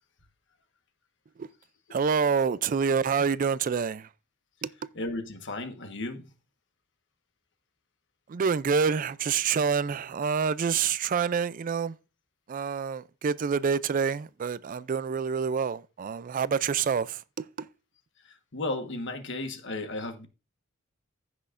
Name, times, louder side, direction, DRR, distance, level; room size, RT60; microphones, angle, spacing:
voice 1, 1.9-4.1 4.6-4.7 8.3-11.9 12.5-17.5, right 6 dB, 40° right, 0.3 m, -27 dB
voice 2, 4.9-6.3 18.5-20.3, left 2 dB, 55° left, 1.3 m, -34 dB
15.5 x 6.2 x 2.5 m
head